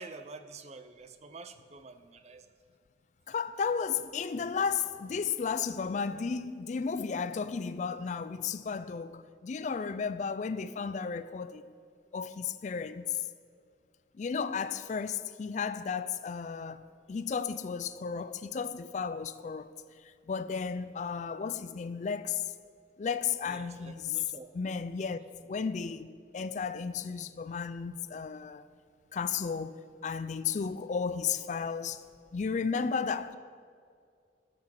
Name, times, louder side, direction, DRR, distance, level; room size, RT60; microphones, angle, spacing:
voice 1, 0.0-2.5 23.5-24.5, right 3 dB, 35° right, 0.5 m, -47 dB
voice 2, 3.3-11.7 12.1-13.2 14.1-19.7 20.0-22.5 23.0-24.2 24.5-28.7 29.1-32.0 32.3-33.4, left 6 dB, 40° left, 0.3 m, -34 dB
13.5 x 6.0 x 5.9 m
head